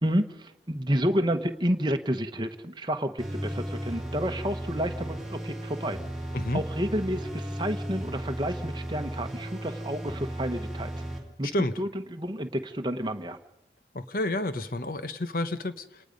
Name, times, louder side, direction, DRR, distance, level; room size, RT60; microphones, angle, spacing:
voice 1, 0.0-6.0 6.5-10.9 11.4-11.5 11.8-13.4, equal, 25° right, 6 dB, 1.1 m, -30 dB
sound 1, 3.2-11.2, right 1 dB, ahead, 2.9 m, -35 dB
voice 2, 11.4-11.8 13.9-16.0, left 1 dB, 50° left, 11 dB, 1.0 m, -30 dB
28.0 x 19.0 x 5.3 m, 0.83 s
head